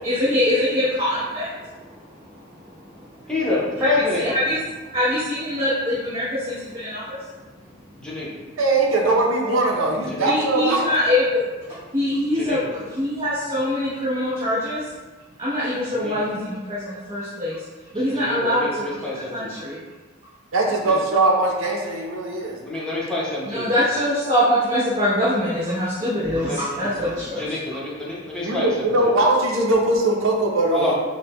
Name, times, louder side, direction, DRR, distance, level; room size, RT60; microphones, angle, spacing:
voice 1, 0.0-2.2 2.8-3.0 3.8-3.9 4.2-4.6 4.9-7.2 10.2-11.4 11.9-14.9 15.4-17.6 17.9-19.1 19.3-19.8 23.5-27.4, left 1 dB, 30° right, -11 dB, 0.9 m, -23 dB
voice 2, 3.3-4.3 7.9-8.4 10.1-10.3 12.3-12.8 15.9-16.3 17.9-19.7 20.7-21.0 22.6-23.9 26.4-26.6 27.1-29.1 30.7-30.9, left 2 dB, 5° left, -7 dB, 0.9 m, -28 dB
voice 3, 8.6-10.9 20.5-22.6 28.4-30.9, right 2 dB, 85° right, 0 dB, 0.7 m, -20 dB
5.0 x 2.2 x 3.0 m, 1.2 s
head